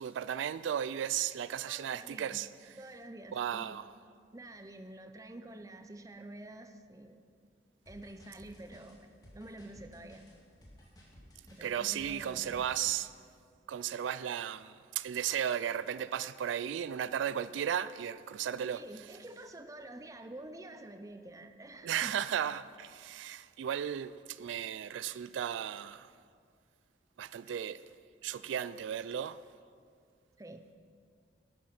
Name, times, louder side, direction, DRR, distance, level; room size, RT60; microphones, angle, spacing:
voice 1, 0.0-2.5 3.3-3.9 11.6-13.1 13.7-18.8 21.8-26.1 27.2-27.8 28.2-29.4, right 9 dB, 85° right, 0.3 m, -35 dB
voice 2, 1.6-2.4 2.8-3.8 4.3-7.2 7.9-10.2 11.5-12.7 18.6-22.2 30.4-30.7, right 1 dB, 20° right, 0.6 m, -48 dB
sound 1, 7.9-13.1, equal, 20° left, 2.0 m, -56 dB
11.5 x 9.4 x 6.0 m
head